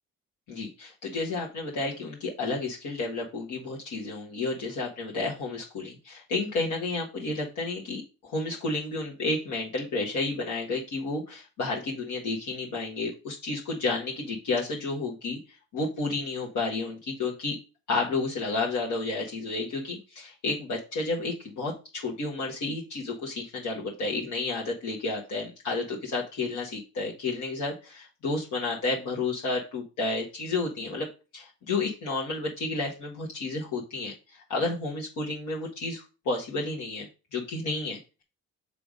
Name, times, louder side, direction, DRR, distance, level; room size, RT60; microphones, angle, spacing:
voice 1, 0.5-15.4 15.7-17.6 17.9-31.1 31.3-37.0 37.3-38.2, left 3 dB, 80° left, -3 dB, 1.6 m, -31 dB
6.9 x 3.4 x 5.2 m, 0.32 s
cardioid pair, 90°, 30 cm